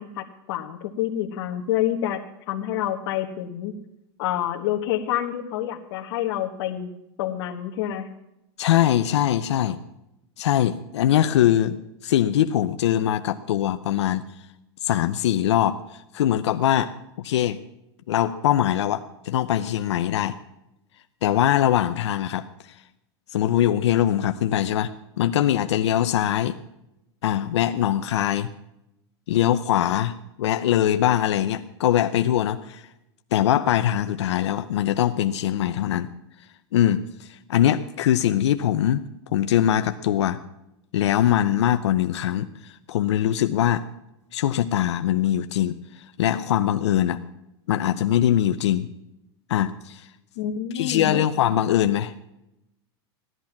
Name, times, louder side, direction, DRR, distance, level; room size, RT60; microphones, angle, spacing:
voice 1, 0.0-2.2 2.5-3.7 4.2-6.9 7.2-8.1 50.4-51.2, left 11 dB, 60° left, -2 dB, 1.5 m, -27 dB
voice 2, 8.6-9.8 10.4-11.8 12.0-14.2 14.8-16.9 17.2-17.6 18.1-20.4 21.2-22.7 23.3-26.6 27.2-28.5 29.3-32.8 33.3-36.1 36.7-39.0 39.3-40.4 40.9-43.8 44.3-47.2 47.7-48.9 49.5-50.1 50.7-52.1, left 11 dB, 90° left, 9 dB, 0.8 m, -22 dB
17.0 x 11.0 x 5.9 m, 0.88 s
supercardioid pair, 140°, 14 cm